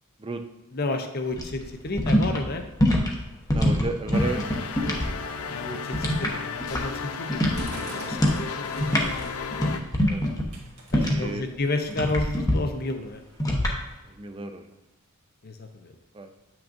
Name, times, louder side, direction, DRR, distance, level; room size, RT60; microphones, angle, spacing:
voice 1, 0.7-2.6 5.5-9.1 10.9-13.2 15.4-15.9, left 2 dB, 45° left, 6 dB, 0.6 m, -31 dB
sound 1, 1.3-5.1 5.4-7.0 7.3-7.7 8.1-8.4 8.7-11.4 11.9-12.6 13.4-13.7, equal, 15° left, 0.8 m, -24 dB
voice 2, 3.5-4.6 4.9-5.0 10.1-10.2 10.9-11.4 14.2-14.6 16.1-16.3, right 2 dB, 25° right, 6 dB, 0.5 m, -33 dB
sound 2, 4.1-9.8, left 5 dB, 90° left, 0.5 m, -34 dB
sound 3, 7.5-9.5 9.9-10.2 10.5-11.4 11.9-12.3 13.0-13.1 13.3-13.4 14.0-14.1 14.8-14.9, right 2 dB, 80° right, 1.6 m, -43 dB
8.4 x 5.9 x 2.6 m, 0.95 s
head